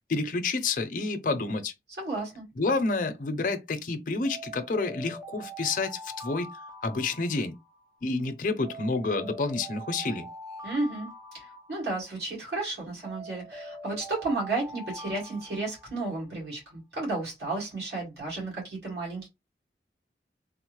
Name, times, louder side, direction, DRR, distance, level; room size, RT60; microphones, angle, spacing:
voice 1, 0.1-1.7 2.6-6.5 6.8-7.5 8.0-10.3, left 3 dB, 50° left, 0.5 m, -29 dB
voice 2, 2.0-2.4 10.6-19.3, right 2 dB, 75° right, 1.8 m, -33 dB
Alarm, 4.2-8.0 8.6-12.3 13.0-16.2, right 1 dB, 20° right, 0.7 m, -44 dB
3.5 x 2.0 x 3.0 m
head